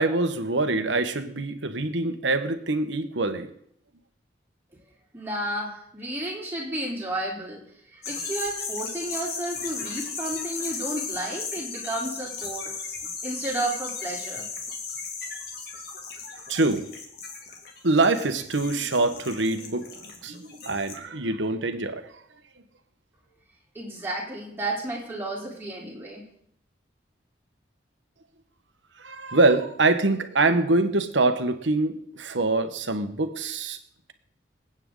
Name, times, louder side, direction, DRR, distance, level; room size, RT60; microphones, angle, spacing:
voice 1, 0.0-3.5 16.5-16.8 17.8-22.1 29.0-33.8, right 2 dB, 90° right, 8 dB, 1.4 m, -24 dB
voice 2, 5.1-7.6 7.9-12.7 13.0-14.5 23.7-26.2, right 1 dB, 10° right, -4 dB, 3.8 m, -32 dB
sound 1, 8.0-21.0, left 5 dB, 55° left, 2.4 m, -36 dB
27.0 x 9.0 x 3.9 m, 0.67 s
head